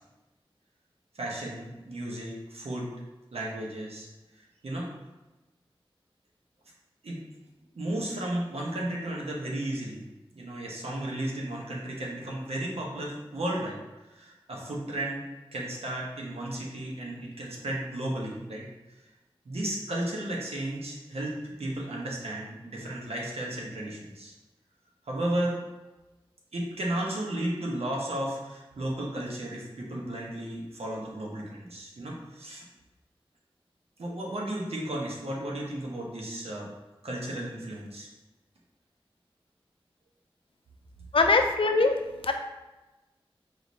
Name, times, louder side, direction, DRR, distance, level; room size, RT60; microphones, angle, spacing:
voice 1, 1.1-2.9 3.3-4.1 4.6-4.9 7.0-7.2 7.7-10.0 10.3-15.2 15.5-18.7 19.4-24.3 25.1-25.6 26.5-32.6 34.0-36.7 37.0-38.1, right 1 dB, 90° right, -3 dB, 0.9 m, -34 dB
voice 2, 41.1-42.0 42.2-42.3, left 3 dB, 65° left, 5 dB, 0.4 m, -22 dB
4.9 x 3.1 x 2.7 m, 1.1 s
wide cardioid pair, 45°, 10 cm